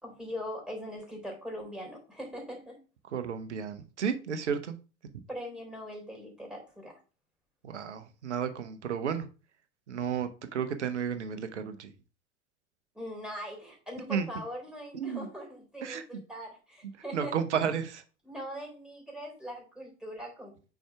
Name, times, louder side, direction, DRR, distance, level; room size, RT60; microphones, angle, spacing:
voice 1, 0.0-2.7 5.3-7.0 12.9-17.3 18.2-20.5, equal, ahead, -1 dB, 3.8 m, -41 dB
voice 2, 3.1-4.8 7.6-9.3 9.9-11.9 14.1-14.4 14.9-15.3 15.8-16.2 17.1-18.0, right 7 dB, 80° right, 10 dB, 1.0 m, -32 dB
6.3 x 4.7 x 3.4 m, 0.34 s
figure-of-eight pair, 85°, 35 cm